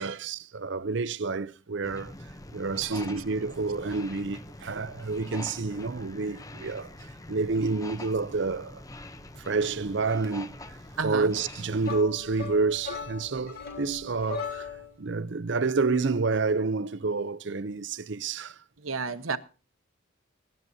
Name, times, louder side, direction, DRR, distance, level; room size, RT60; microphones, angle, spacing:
voice 1, 0.0-2.1 2.5-7.0 7.3-8.8 9.3-10.8 11.0-14.7 15.0-18.6, right 4 dB, 60° right, 0.6 m, -29 dB
sound 1, 1.8-12.0, left 1 dB, 15° left, 0.7 m, -44 dB
voice 2, 2.8-3.2 11.0-11.3 18.8-19.4, right 5 dB, 90° right, 1.1 m, -32 dB
sound 2, 11.8-15.0, left 6 dB, 50° left, 3.4 m, -38 dB
22.0 x 12.0 x 2.7 m
head